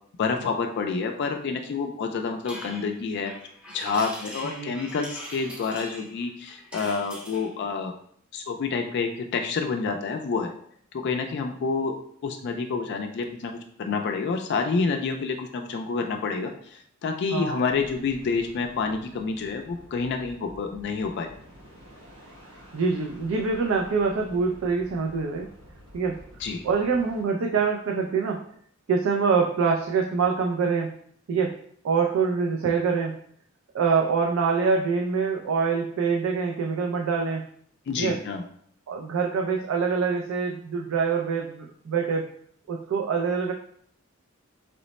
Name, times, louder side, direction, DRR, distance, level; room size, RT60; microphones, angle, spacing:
voice 1, 0.2-3.3 3.7-7.9 8.3-10.5 10.9-12.0 12.2-21.3 26.4-26.6 37.9-38.4, left 4 dB, 55° left, 4 dB, 0.3 m, -28 dB
sound 1, 2.4-7.5, equal, 5° right, 0.6 m, -41 dB
voice 2, 17.3-17.6 22.7-25.5 25.9-26.2 26.6-28.4 28.9-30.9 31.3-31.5 31.8-33.2 33.7-37.4 38.0-38.2 38.9-42.3 42.7-43.5, right 5 dB, 90° right, 1 dB, 0.4 m, -25 dB
sound 2, 17.7-27.2, equal, 70° right, 1.3 m, -50 dB
3.1 x 2.0 x 4.0 m, 0.63 s
head